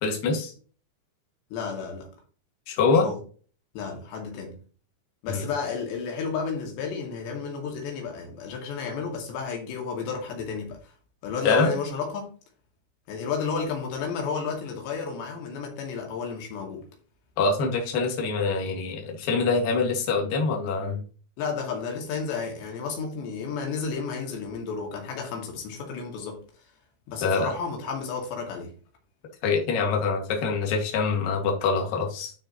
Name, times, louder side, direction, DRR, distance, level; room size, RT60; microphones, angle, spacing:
voice 1, 0.0-0.5 2.7-3.1 5.3-5.5 11.5-11.7 17.4-21.0 27.2-27.5 29.4-32.3, left 4 dB, 60° left, 3.5 m, -24 dB
voice 2, 1.5-2.1 3.0-3.2 3.7-4.6 5.2-10.8 11.2-12.3 13.1-16.9 21.4-26.4 27.1-28.7, left 5 dB, 90° left, 4.5 m, -32 dB
13.5 x 4.8 x 3.0 m
omnidirectional pair, 4.8 m